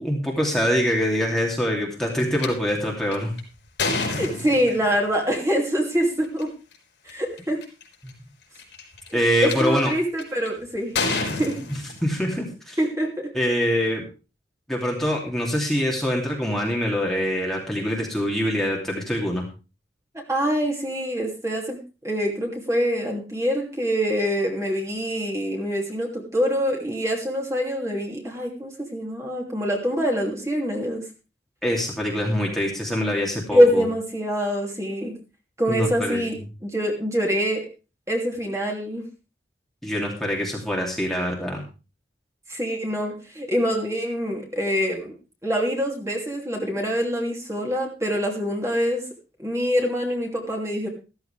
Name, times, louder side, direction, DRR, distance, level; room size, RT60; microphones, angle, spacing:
voice 1, 0.0-3.3 9.1-9.9 12.0-12.8 13.3-14.0 14.7-19.5 31.6-33.8 35.7-36.4 39.8-41.6, equal, ahead, -2 dB, 2.6 m, -24 dB
sound 1, 2.4-2.5 3.1-5.0 6.2-6.4 7.1-7.2 7.4-7.8 8.6-9.5 10.2-10.5 11.0-12.4, left 3 dB, 70° left, 4.7 m, -28 dB
voice 2, 4.1-6.5 7.0-7.6 9.1-11.6 12.8-13.3 20.3-21.8 22.0-31.0 33.5-35.1 35.6-36.4 36.6-37.7 38.1-39.1 42.5-45.1 45.4-49.0 49.4-50.9, equal, 15° right, 0 dB, 2.9 m, -25 dB
14.5 x 14.0 x 3.4 m, 0.32 s
head